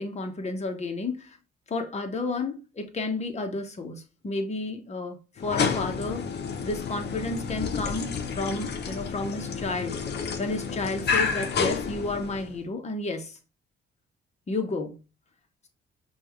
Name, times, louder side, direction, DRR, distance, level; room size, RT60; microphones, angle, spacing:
voice 1, 0.0-1.4 1.7-6.2 6.6-13.4 14.5-15.0, left 3 dB, 35° left, 1.0 m, -32 dB
sound 1, 5.4-12.6, left 5 dB, 55° left, 0.8 m, -30 dB
5.3 x 2.4 x 3.1 m
cardioid pair, 90°, 20 cm